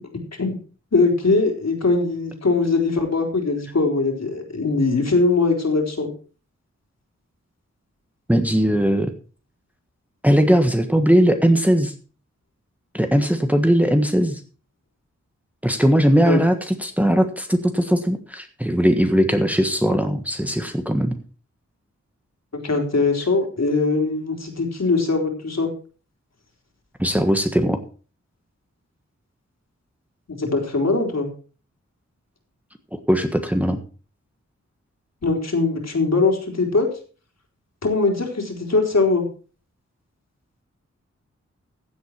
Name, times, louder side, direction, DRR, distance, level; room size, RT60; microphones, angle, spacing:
voice 1, 0.9-6.1 16.3-16.4 22.5-25.7 30.3-31.3 35.2-36.9 37.8-39.2, left 3 dB, 60° left, 2 dB, 3.8 m, -21 dB
voice 2, 8.3-9.1 10.2-11.9 12.9-14.4 15.6-21.2 27.0-27.8 32.9-33.8, equal, 5° right, 6 dB, 1.4 m, -19 dB
15.0 x 8.2 x 4.6 m, 0.38 s
wide cardioid pair, 85°, 29 cm